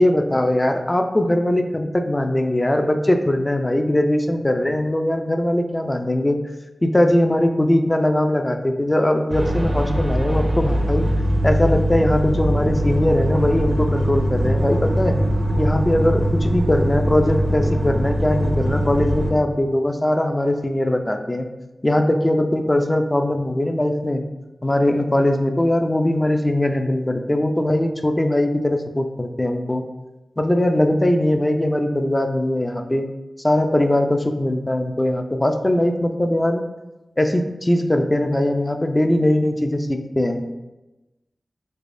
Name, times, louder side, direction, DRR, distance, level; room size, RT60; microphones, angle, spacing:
voice 1, 0.0-6.4 6.8-11.1 11.4-15.2 15.6-21.5 21.8-24.2 24.6-29.8 30.4-33.0 33.4-36.7 37.2-40.5, left 1 dB, 25° left, 6 dB, 0.3 m, -20 dB
sound 1, 9.3-19.3, equal, 50° right, 0.4 m, -21 dB
3.3 x 3.1 x 2.6 m, 1.0 s
wide cardioid pair, 60°, 0 cm